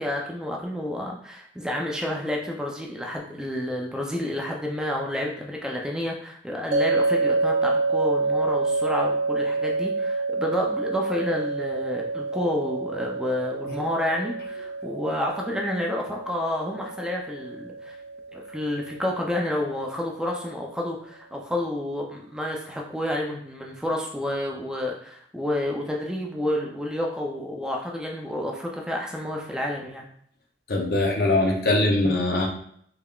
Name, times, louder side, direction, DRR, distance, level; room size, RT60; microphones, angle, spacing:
voice 1, 0.0-18.0 18.3-30.1, left 1 dB, 5° right, -1 dB, 0.4 m, -30 dB
sound 1, 6.7-19.8, right 3 dB, 60° right, 0.7 m, -28 dB
voice 2, 30.7-32.5, left 2 dB, 60° left, 0 dB, 0.7 m, -22 dB
3.6 x 3.3 x 2.4 m, 0.66 s
head